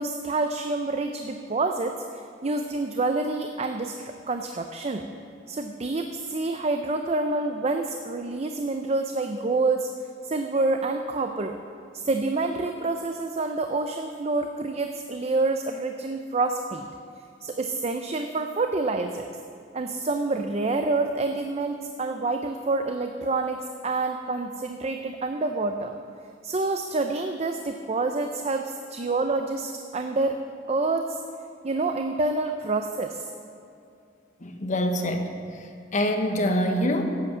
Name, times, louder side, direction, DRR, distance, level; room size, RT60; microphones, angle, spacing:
voice 1, 0.0-5.0 5.5-9.9 10.3-11.6 11.9-16.9 17.4-19.3 19.7-25.9 26.4-30.4 30.7-31.2 31.6-33.3, right 3 dB, 35° right, 6 dB, 0.5 m, -27 dB
voice 2, 34.4-35.3 35.9-37.0, equal, 40° left, 4 dB, 1.1 m, -25 dB
11.0 x 8.1 x 7.4 m, 2.6 s
head